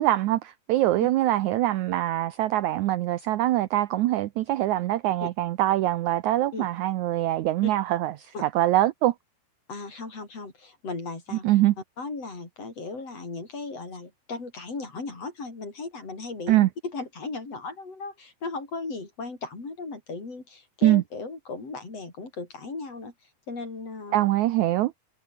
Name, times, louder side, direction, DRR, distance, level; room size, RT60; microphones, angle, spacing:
voice 1, 0.0-9.1 11.4-11.7 16.5-16.7 20.8-21.0 24.1-24.9, right 15 dB, 75° right, 1.8 m, -23 dB
voice 2, 9.7-11.4 12.0-23.1 23.5-24.3, left 3 dB, 45° left, 6.7 m, -36 dB
omnidirectional pair, 4.1 m